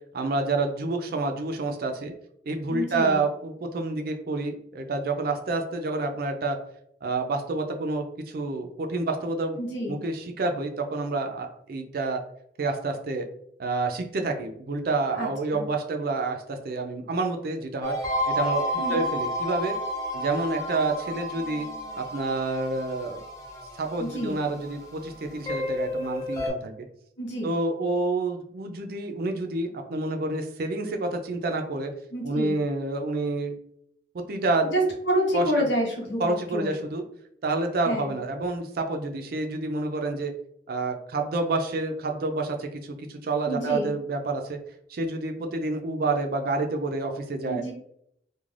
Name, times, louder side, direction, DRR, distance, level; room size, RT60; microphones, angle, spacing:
voice 1, 0.1-2.1 2.4-6.6 7.0-8.1 8.3-9.6 9.9-12.2 12.6-13.2 13.6-17.9 18.3-19.7 20.1-21.7 21.9-23.2 23.8-26.7 27.4-31.9 32.2-33.5 34.3-34.7 35.3-35.7 36.2-37.0 37.4-40.3 40.7-42.8 43.1-44.6 44.9-47.6, right 3 dB, 50° right, 4 dB, 0.4 m, -28 dB
voice 2, 2.7-3.2 9.6-10.0 15.1-15.7 18.8-19.0 24.0-24.4 27.2-27.5 32.1-32.6 34.6-36.7 37.8-38.2 43.5-43.9 47.4-47.7, equal, 80° left, 0 dB, 0.8 m, -28 dB
sound 1, 17.8-26.5, left 1 dB, 20° left, 0.5 m, -31 dB
2.4 x 2.2 x 3.1 m, 0.72 s
head